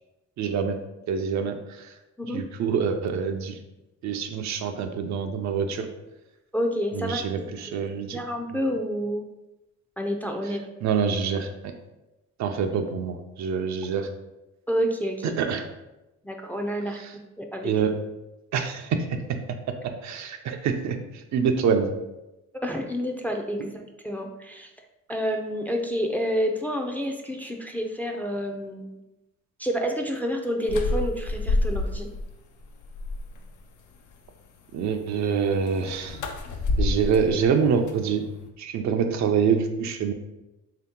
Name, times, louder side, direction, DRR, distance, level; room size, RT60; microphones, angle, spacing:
voice 1, 0.4-0.8 1.1-1.9 2.3-3.6 4.0-5.9 6.9-8.2 8.5-8.6 10.4-11.7 12.4-14.1 15.2-15.6 16.9-17.1 17.6-17.9 18.5-19.4 20.0-21.9 34.7-36.2 36.8-38.2 38.6-40.1, right 6 dB, 65° right, 5 dB, 0.5 m, -26 dB
voice 2, 6.5-7.8 8.1-9.2 10.0-10.6 14.7-15.3 16.2-17.0 17.4-17.7 22.5-24.7 25.1-29.0 29.6-32.1, equal, 5° left, 3 dB, 0.4 m, -29 dB
sound 1, 30.7-32.2 32.6-33.5 35.7-38.5, left 2 dB, 80° left, 0.6 m, -29 dB
3.6 x 2.8 x 3.6 m, 0.99 s
cardioid pair, 90°, 30 cm